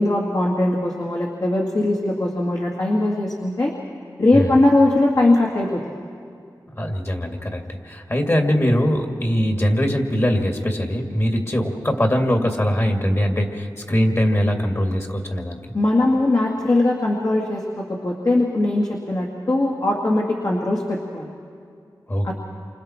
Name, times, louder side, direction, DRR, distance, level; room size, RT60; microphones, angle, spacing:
voice 1, 0.0-3.7 4.2-5.8 15.7-21.3 22.2-22.3, left 2 dB, 55° left, -2 dB, 2.2 m, -20 dB
voice 2, 6.8-15.6 22.1-22.3, equal, 35° left, 3 dB, 2.3 m, -21 dB
28.5 x 25.5 x 4.5 m, 2.3 s
wide cardioid pair, 60°, 8 cm